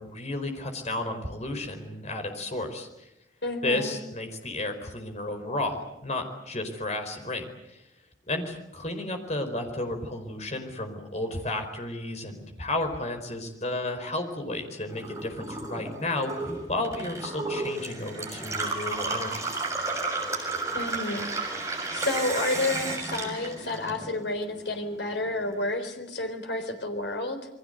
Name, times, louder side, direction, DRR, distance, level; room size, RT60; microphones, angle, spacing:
voice 1, 0.0-3.1 3.6-7.9 8.3-16.4 16.7-19.5, left 2 dB, 40° left, 6 dB, 4.7 m, -32 dB
voice 2, 3.4-4.0 20.7-21.3 21.9-27.4, left 2 dB, 70° left, 6 dB, 4.1 m, -30 dB
Gurgling / Water tap faucet / Sink (filling or washing), 14.9-24.4 24.7-25.6, right 3 dB, 15° right, 6.8 m, -32 dB
28.5 x 22.5 x 8.0 m, 0.88 s
head